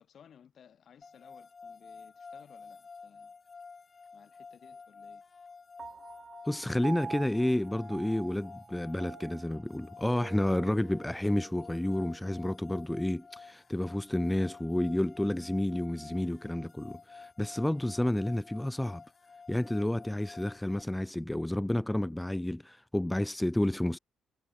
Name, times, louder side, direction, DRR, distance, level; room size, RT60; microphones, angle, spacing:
voice 1, 0.0-3.3 4.1-5.2, left 8 dB, 60° left, 5.0 m, -59 dB
sound 1, 1.0-20.8, left 5 dB, 40° left, 1.3 m, -51 dB
Piano, 5.8-12.5, right 6 dB, 45° right, 2.8 m, -46 dB
voice 2, 6.4-19.0 19.5-24.0, left 1 dB, 10° left, 0.4 m, -30 dB
supercardioid pair, 70°, 0 cm